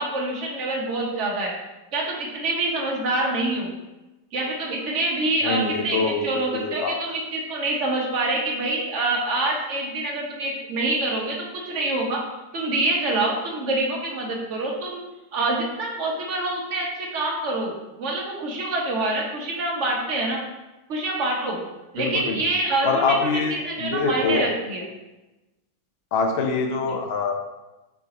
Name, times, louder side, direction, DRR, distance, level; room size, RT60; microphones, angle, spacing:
voice 1, 0.0-1.5 1.9-3.7 4.3-12.2 12.5-15.0 15.3-20.4 20.9-21.6 21.9-24.9, right 2 dB, 50° right, -2 dB, 1.1 m, -26 dB
voice 2, 5.4-6.9 22.0-22.4 22.8-24.5 26.1-27.3, left 4 dB, 80° left, 3 dB, 0.5 m, -24 dB
4.8 x 2.5 x 4.0 m, 1.0 s
omnidirectional pair, 1.8 m